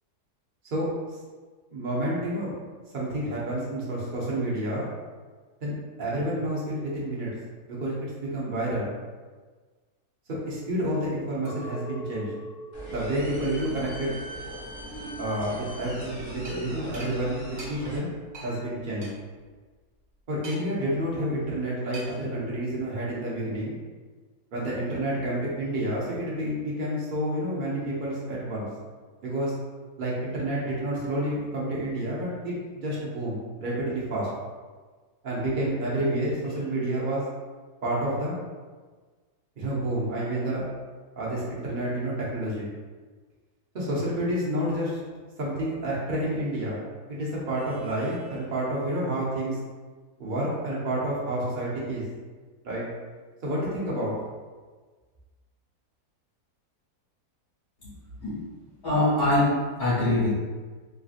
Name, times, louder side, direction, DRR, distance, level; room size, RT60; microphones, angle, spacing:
voice 1, 0.7-1.2 1.7-2.5 2.9-4.8 5.6-5.7 6.0-7.3 7.7-8.9 10.5-12.3 12.9-14.1 15.2-18.1 18.4-19.1 20.3-23.7 24.5-28.7 29.2-29.5 30.0-34.3 35.2-37.3 37.8-38.4 39.6-40.7 41.2-42.7 43.7-45.0 45.4-46.8 47.1-49.6 50.2-52.0 52.6-52.8 53.4-54.1, right 1 dB, 90° right, -6 dB, 0.4 m, -29 dB
Chink clink, 11.5-15.8 16.2-16.8, right 2 dB, 70° left, 0.8 m, -43 dB
sound 1, 12.7-18.0, right 1 dB, 45° left, 0.9 m, -40 dB
sound 2, 16.4-16.6 16.9-17.1 17.6-17.7 18.3-18.5 19.0-19.1 20.4-20.8 21.9-22.2, right 2 dB, 45° right, 1.0 m, -41 dB
voice 2, 58.8-59.5 59.8-60.3, left 1 dB, 85° left, -10 dB, 1.7 m, -22 dB
3.2 x 2.5 x 2.4 m, 1.4 s
omnidirectional pair, 1.7 m